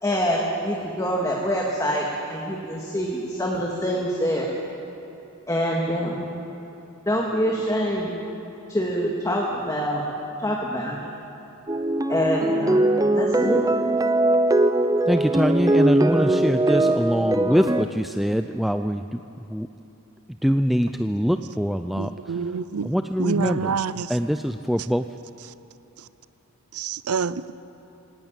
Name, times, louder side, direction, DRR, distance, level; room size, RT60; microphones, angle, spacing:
voice 1, 0.0-4.6 5.5-6.3 7.1-8.2 8.7-10.0 10.4-11.1 12.1-13.6, equal, 15° left, 2.1 m, -25 dB
sound 1, 11.7-17.9, right 1 dB, 15° right, 0.7 m, -21 dB
voice 2, 15.1-19.2 19.5-19.7 20.4-22.1 22.8-23.7 24.1-25.0, equal, ahead, 0.4 m, -23 dB
voice 3, 22.0-22.9 23.2-24.1 26.7-27.5, right 6 dB, 90° right, 0.6 m, -27 dB
19.0 x 18.0 x 8.9 m
head